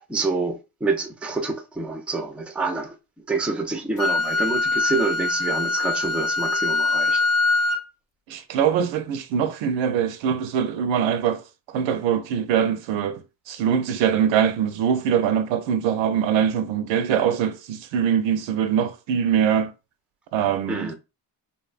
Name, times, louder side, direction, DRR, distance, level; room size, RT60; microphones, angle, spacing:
voice 1, 0.0-3.0 3.3-7.3 20.7-20.9, right 3 dB, 5° right, 0.3 m, -27 dB
Wind instrument woodwind instrument, 4.0-7.8, left 3 dB, 55° left, 0.6 m, -23 dB
voice 2, 8.3-11.4 11.7-19.7 20.3-20.9, right 8 dB, 90° right, 0.5 m, -23 dB
2.6 x 2.1 x 2.4 m
cardioid pair, 80°, 44 cm